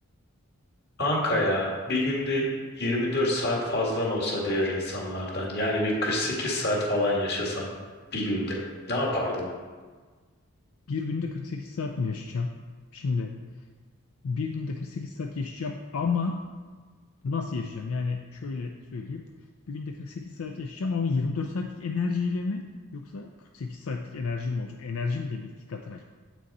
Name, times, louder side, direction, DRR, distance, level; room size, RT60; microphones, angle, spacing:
voice 1, 1.0-2.4 2.8-7.7 8.1-8.6 8.9-9.5, left 1 dB, 50° left, -2 dB, 1.8 m, -27 dB
voice 2, 10.9-12.6 12.9-13.4 14.2-16.4 17.2-19.2 19.7-22.6 22.9-26.0, left 4 dB, 80° left, 3 dB, 0.5 m, -31 dB
7.8 x 6.2 x 4.2 m, 1.4 s
head